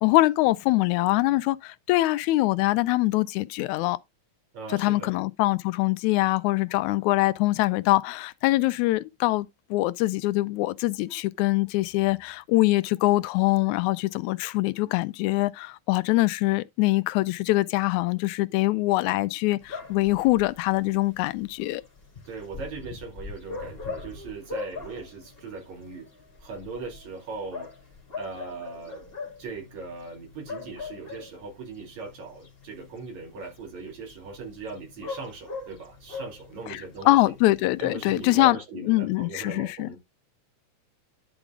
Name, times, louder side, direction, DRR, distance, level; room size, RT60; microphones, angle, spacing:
voice 1, 0.0-4.0 4.7-21.8 36.7-36.8 37.1-38.6 38.9-39.9, left 19 dB, 85° left, 2.0 m, -23 dB
voice 2, 4.5-5.1 22.3-26.1 26.4-27.7 28.1-29.0 29.4-37.4 37.8-40.0, right 4 dB, 70° right, 3.7 m, -39 dB
sound 1, 19.6-38.5, left 4 dB, 20° left, 2.9 m, -42 dB
11.0 x 5.0 x 3.6 m
omnidirectional pair, 3.3 m